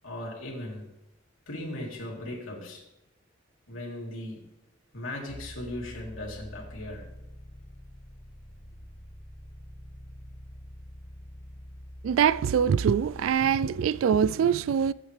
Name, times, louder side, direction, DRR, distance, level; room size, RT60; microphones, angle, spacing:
voice 1, 0.0-0.9 1.5-2.8 3.7-4.4 4.9-7.1, left 1 dB, 90° left, 3.3 m, -37 dB
sound 1, 5.3-13.5, equal, 50° left, 2.0 m, -46 dB
voice 2, 12.0-14.9, right 7 dB, 85° right, 0.3 m, -23 dB
17.5 x 8.8 x 3.3 m
head